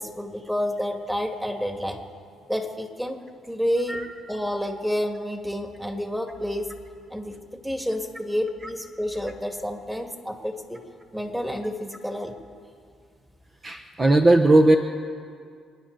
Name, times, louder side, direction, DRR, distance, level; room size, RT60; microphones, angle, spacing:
voice 1, 0.0-2.0 2.5-3.2 3.5-6.7 7.1-10.8 11.1-12.4, equal, 5° right, 4 dB, 2.0 m, -29 dB
voice 2, 13.6-14.8, right 2 dB, 30° right, 4 dB, 0.9 m, -17 dB
29.0 x 9.9 x 4.0 m, 2.2 s
supercardioid pair, 70°, 0 cm